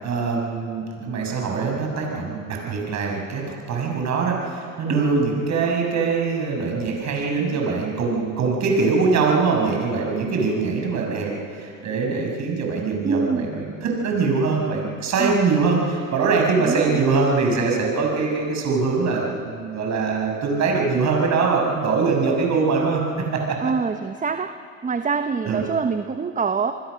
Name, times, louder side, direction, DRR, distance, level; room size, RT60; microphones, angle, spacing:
voice 1, 0.0-3.4 3.7-23.0 23.3-23.4 25.5-25.6, right 4 dB, 45° right, 0 dB, 7.0 m, -23 dB
voice 2, 4.9-5.3 13.0-13.5 15.2-15.4 16.6-17.0 23.6-24.5 24.8-26.7, right 5 dB, 20° right, 9 dB, 1.0 m, -25 dB
28.5 x 20.5 x 6.6 m, 2.3 s
hypercardioid pair, 75°, 38 cm